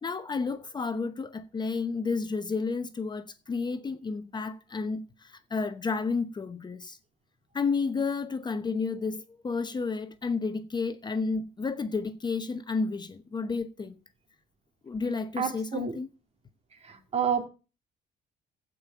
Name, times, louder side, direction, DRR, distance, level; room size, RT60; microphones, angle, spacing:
voice 1, 0.0-7.0 7.5-14.0 14.8-16.1, left 4 dB, 25° left, 0.9 m, -31 dB
voice 2, 15.4-16.0 16.8-17.5, right 7 dB, 40° right, 2.6 m, -29 dB
15.5 x 5.4 x 6.7 m
cardioid pair, 110°, 17 cm